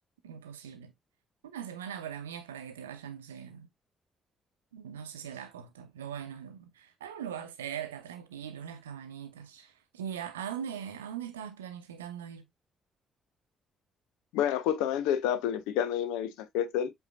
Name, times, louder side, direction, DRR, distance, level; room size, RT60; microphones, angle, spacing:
voice 1, 0.2-0.9 1.4-3.7 4.7-12.5, right 9 dB, 80° right, 0.7 m, -41 dB
voice 2, 14.3-16.9, left 10 dB, 65° left, 0.5 m, -29 dB
7.8 x 2.8 x 2.4 m
figure-of-eight pair, 45°, 0 cm